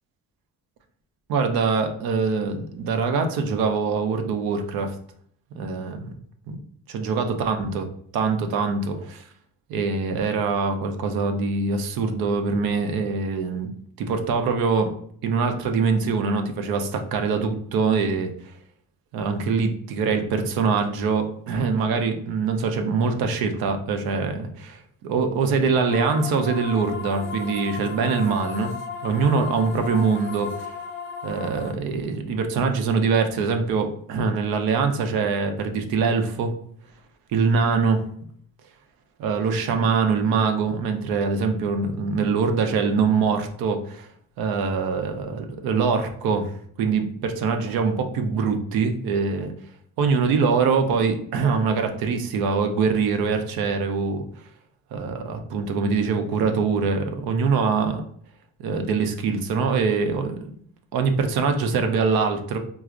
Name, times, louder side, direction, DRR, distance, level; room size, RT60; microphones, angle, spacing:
voice 1, 1.3-5.0 5.5-6.1 6.5-6.6 6.9-7.9 8.1-9.2 9.7-13.7 14.0-14.9 15.2-18.3 19.1-28.7 29.0-30.7 31.2-36.5 37.3-38.0 39.2-44.1 44.4-46.5 46.8-49.5 50.0-54.2 54.9-58.0 58.6-60.5 60.9-62.6, right 5 dB, 90° right, 6 dB, 0.6 m, -23 dB
sound 1, 25.9-31.7, left 6 dB, 35° left, 0.5 m, -35 dB
4.6 x 2.0 x 2.4 m, 0.62 s
cardioid pair, 110°, 35 cm